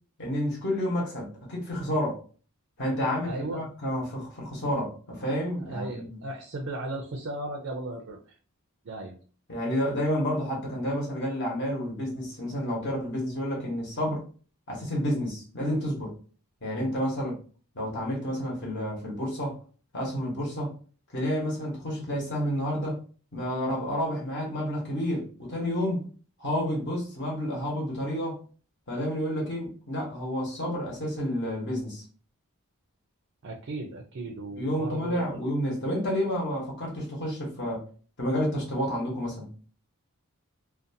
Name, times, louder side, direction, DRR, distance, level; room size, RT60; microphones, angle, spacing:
voice 1, 0.2-2.2 2.8-6.2 9.5-14.2 14.7-16.2 16.6-17.4 17.7-19.6 19.9-20.7 21.1-23.0 23.3-26.1 26.4-28.4 28.9-32.0 34.6-37.8 38.2-39.5, equal, 50° left, -2 dB, 1.0 m, -30 dB
voice 2, 3.2-3.6 5.6-8.3 8.8-9.2 12.8-12.9 33.4-35.4, right 2 dB, 55° right, 2 dB, 0.4 m, -36 dB
2.5 x 2.3 x 2.6 m, 0.39 s
head